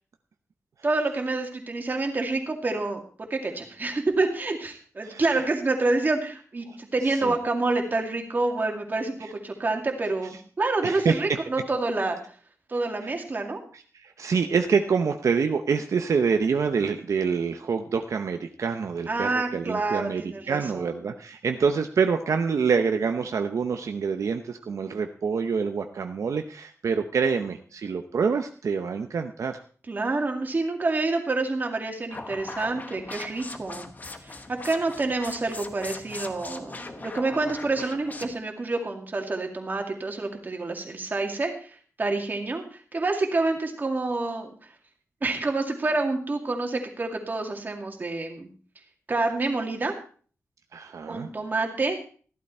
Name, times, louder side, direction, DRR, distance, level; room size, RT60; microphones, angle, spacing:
voice 1, 0.8-12.2 12.7-13.6 19.1-20.9 29.9-33.9 34.2-44.5 45.2-48.5 49.1-49.9 51.1-52.0, right 3 dB, 35° right, 3 dB, 2.3 m, -28 dB
voice 2, 7.0-7.3 9.2-9.3 10.8-11.2 13.0-13.1 13.7-29.6 50.7-51.3, right 5 dB, 75° right, 6 dB, 0.8 m, -26 dB
sound 1, 32.1-38.3, left 3 dB, 30° left, 1.2 m, -40 dB
14.5 x 12.0 x 4.3 m, 0.42 s
wide cardioid pair, 175°, 5 cm